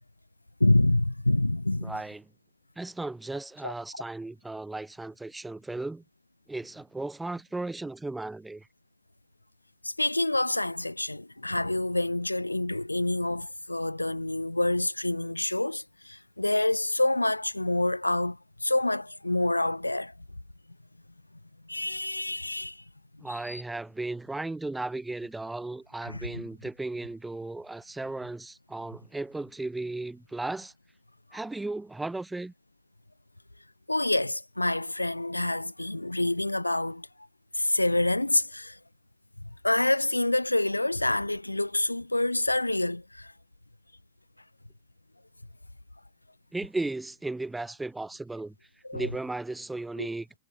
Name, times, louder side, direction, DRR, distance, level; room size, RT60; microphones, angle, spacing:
voice 1, 0.6-1.9 3.6-3.7 9.8-20.1 21.7-22.8 23.3-23.6 26.1-26.4 33.9-37.1 37.5-38.8 39.6-43.3 48.8-49.1 50.0-50.1, left 2 dB, 85° left, 0.6 m, -27 dB
voice 2, 1.8-2.3 2.8-6.0 6.5-8.7 23.2-30.7 31.3-32.5 46.5-48.5 48.9-50.3, right 2 dB, 5° right, 0.6 m, -35 dB
figure-of-eight pair, 90°, 0 cm